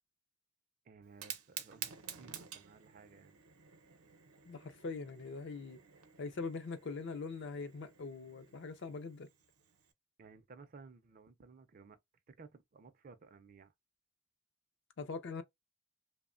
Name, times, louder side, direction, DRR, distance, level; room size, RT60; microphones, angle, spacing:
voice 1, 0.8-3.4 10.2-12.0 12.3-13.7, right 4 dB, 40° right, 0.4 m, -57 dB
Fire, 1.0-9.9, right 9 dB, 85° right, 0.6 m, -51 dB
voice 2, 4.5-5.8 6.2-9.3 15.0-15.4, left 4 dB, 55° left, 0.4 m, -42 dB
2.9 x 2.0 x 2.4 m
head